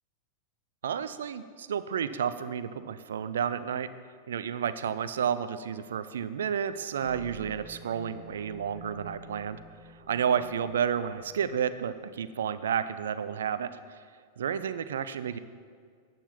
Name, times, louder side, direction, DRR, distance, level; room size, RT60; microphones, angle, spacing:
voice 1, 0.8-3.9 4.3-9.6 10.1-14.0 14.4-15.4, right 8 dB, 65° right, 14 dB, 0.5 m, -31 dB
sound 1, 7.0-11.7, right 1 dB, 10° right, 3.7 m, -50 dB
11.5 x 9.2 x 5.7 m, 2.1 s
figure-of-eight pair, 90°, 0 cm